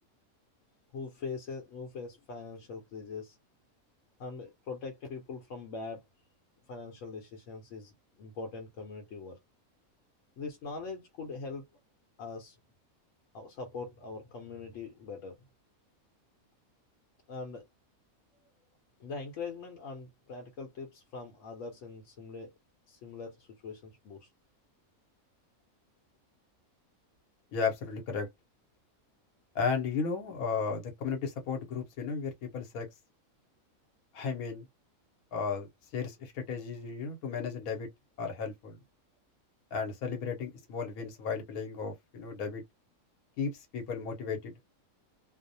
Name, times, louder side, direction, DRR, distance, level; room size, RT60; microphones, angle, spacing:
voice 1, 0.9-3.4 4.2-6.0 6.7-9.4 10.4-11.6 12.2-12.6 13.3-15.4 17.3-17.7 19.0-22.5 22.9-24.3, left 4 dB, 70° left, 1.0 m, -42 dB
voice 2, 27.5-28.3 29.5-32.9 34.1-34.6 35.3-37.9 38.2-38.8 39.7-42.6 43.4-44.5, left 5 dB, 85° left, 1.1 m, -34 dB
2.6 x 2.0 x 2.6 m
omnidirectional pair, 1.5 m